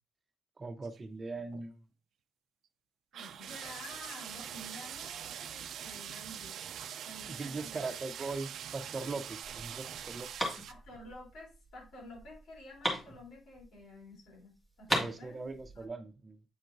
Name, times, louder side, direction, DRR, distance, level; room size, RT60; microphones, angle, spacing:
voice 1, 0.6-1.8 7.3-10.3 14.9-16.4, right 3 dB, 25° right, 0.8 m, -40 dB
sound 1, 0.8-1.0 1.4-1.7 3.1-10.7, right 9 dB, 70° right, 0.5 m, -43 dB
voice 2, 3.1-6.6 7.0-7.8 10.7-14.5 14.8-15.5 15.7-15.9, left 1 dB, 75° left, 3.5 m, -50 dB
sound 2, 9.4-14.0 14.3-14.4 14.6-15.9, equal, 10° left, 2.1 m, -37 dB
8.7 x 4.4 x 2.6 m
cardioid pair, 115°, 0 cm